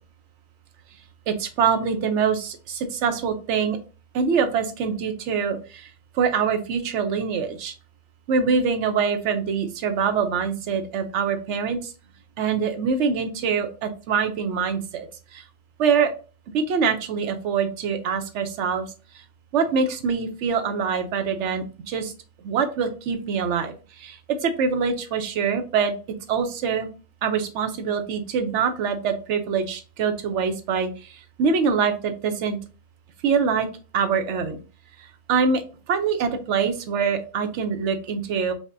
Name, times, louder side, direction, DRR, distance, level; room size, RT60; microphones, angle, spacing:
voice 1, 1.3-3.8 4.1-5.9 6.1-7.7 8.3-11.9 12.4-15.1 15.3-15.4 15.8-16.1 16.5-18.9 19.5-22.1 22.4-25.9 26.3-26.9 27.2-32.6 33.2-33.7 33.9-34.6 35.3-35.6 35.9-38.5, right 6 dB, 90° right, 8 dB, 0.9 m, -24 dB
5.2 x 2.1 x 2.5 m, 0.34 s
omnidirectional pair, 1.2 m